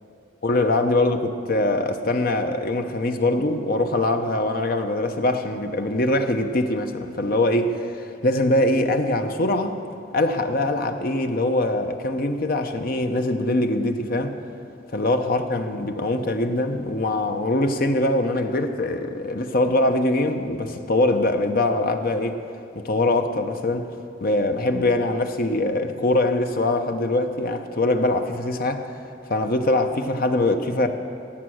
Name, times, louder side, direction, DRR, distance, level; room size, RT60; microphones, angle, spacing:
voice 1, 0.4-9.8 10.1-14.3 14.9-22.4 22.7-23.9 24.2-28.9 29.3-30.9, left 2 dB, 45° left, 0.7 m, -23 dB
17.5 x 7.4 x 6.2 m
head